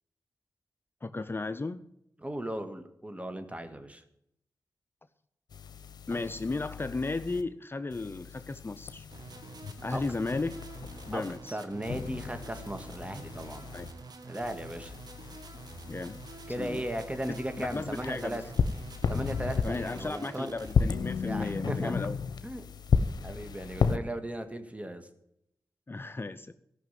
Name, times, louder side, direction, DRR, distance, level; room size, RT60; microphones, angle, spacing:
voice 1, 1.0-1.8 6.1-9.1 9.8-10.6 11.1-11.6 13.7-13.9 15.9-16.2 16.6-16.8 17.3-18.4 19.6-22.1 25.9-26.5, left 3 dB, 35° left, 11 dB, 0.6 m, -35 dB
voice 2, 2.2-4.0 9.9-10.0 11.1-11.2 11.5-13.7 14.3-14.9 16.5-18.4 19.1-20.6 21.2-22.0 22.4-22.6 23.2-25.1, right 1 dB, 20° right, 8 dB, 1.8 m, -36 dB
sound 1, 5.5-7.4 7.9-11.4 11.9-13.9 14.4-20.1 20.6-24.0, left 6 dB, 80° left, 0.8 m, -34 dB
sound 2, 9.1-20.8, right 4 dB, 75° right, 1.6 m, -47 dB
14.5 x 5.9 x 9.2 m, 0.79 s
cardioid pair, 50°, 7 cm